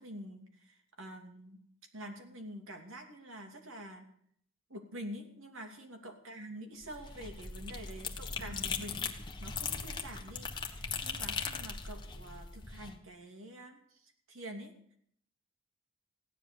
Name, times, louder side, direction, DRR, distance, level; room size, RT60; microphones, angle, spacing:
voice 1, 0.0-1.6 1.9-4.1 4.7-13.8 14.0-14.7, equal, 85° right, 4 dB, 2.8 m, -47 dB
sound 1, 6.8-12.9, left 5 dB, 25° left, 1.3 m, -39 dB
16.0 x 10.5 x 7.0 m, 0.65 s
head